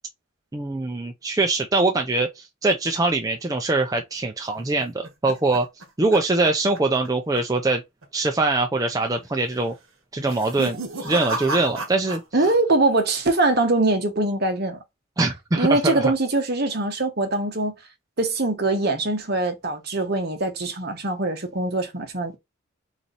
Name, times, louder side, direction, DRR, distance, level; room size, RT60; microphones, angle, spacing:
voice 1, 0.5-5.7 6.0-7.8 8.1-9.7 10.1-12.2 15.2-16.1, right 2 dB, 15° right, 0.4 m, -23 dB
sound 1, 4.6-7.1 7.3-7.7 8.0-8.1 8.9-9.3 10.1-12.6 12.8-13.4, right 2 dB, 70° right, 1.2 m, -34 dB
voice 2, 12.3-14.8 15.5-17.7 18.2-22.3, right 2 dB, 45° right, 1.1 m, -22 dB
4.0 x 3.1 x 4.0 m
head